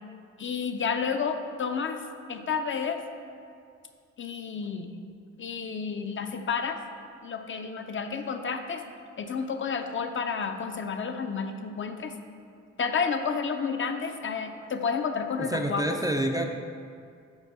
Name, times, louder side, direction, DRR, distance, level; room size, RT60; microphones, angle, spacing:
voice 1, 0.4-2.0 2.3-3.0 4.2-4.9 5.4-6.8 7.2-8.8 9.2-12.1 12.8-16.0, left 5 dB, 40° left, 6 dB, 0.6 m, -30 dB
voice 2, 15.4-16.4, right 1 dB, 10° right, 3 dB, 0.4 m, -27 dB
5.2 x 4.4 x 4.8 m, 2.3 s
supercardioid pair, 55°, 31 cm